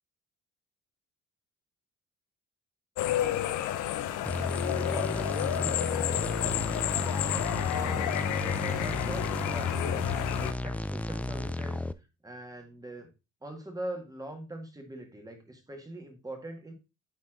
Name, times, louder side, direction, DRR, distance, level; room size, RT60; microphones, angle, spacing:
sound 1, 3.0-10.5, left 12 dB, 85° left, 0.6 m, -30 dB
voice 1, 3.6-4.1 4.5-13.1 13.4-16.7, right 1 dB, 10° right, 4 dB, 1.7 m, -43 dB
sound 2, 4.2-11.9, left 1 dB, 5° left, 0.3 m, -33 dB
9.4 x 3.6 x 3.7 m, 0.28 s
cardioid pair, 90°, 30 cm